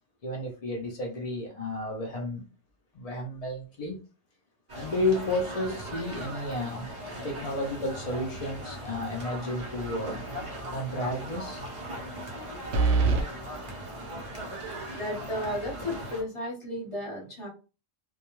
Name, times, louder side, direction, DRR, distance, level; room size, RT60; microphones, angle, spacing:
voice 1, 0.2-2.5 2.9-4.0 4.7-10.2 10.7-11.6 15.4-15.5, left 1 dB, 80° left, 0.3 m, -32 dB
sound 1, 4.7-16.2, right 1 dB, 40° right, 0.5 m, -39 dB
sound 2, 9.6-10.1 10.4-10.5 12.7-13.3, right 4 dB, 65° right, 0.8 m, -24 dB
voice 2, 14.9-17.5, left 1 dB, 25° left, 0.9 m, -34 dB
2.2 x 2.2 x 2.9 m
omnidirectional pair, 1.4 m